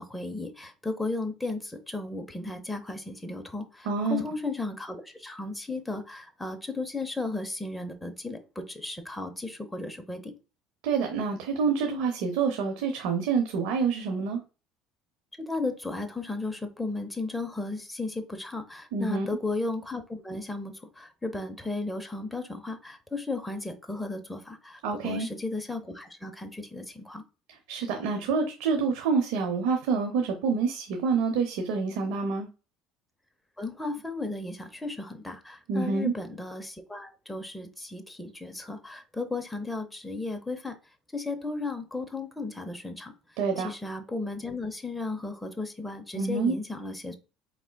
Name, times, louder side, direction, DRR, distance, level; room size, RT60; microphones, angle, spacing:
voice 1, 0.0-10.3 15.4-27.2 33.6-40.8 41.1-47.2, left 2 dB, 5° left, 6 dB, 0.7 m, -35 dB
voice 2, 3.9-4.2 10.8-14.4 18.9-19.3 24.8-25.3 27.7-32.5 35.7-36.1 43.4-43.7 46.1-46.5, right 5 dB, 80° right, 3 dB, 0.7 m, -27 dB
4.8 x 3.5 x 2.2 m, 0.32 s
supercardioid pair, 110°, 0 cm